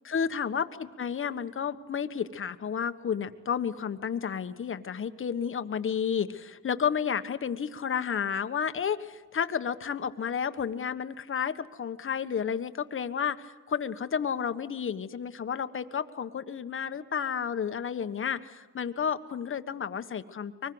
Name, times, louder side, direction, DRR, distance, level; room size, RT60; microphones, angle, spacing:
voice 1, 0.0-20.7, left 7 dB, 45° left, 10 dB, 1.4 m, -31 dB
24.0 x 20.5 x 8.0 m, 1.2 s
cardioid pair, 90°, 30 cm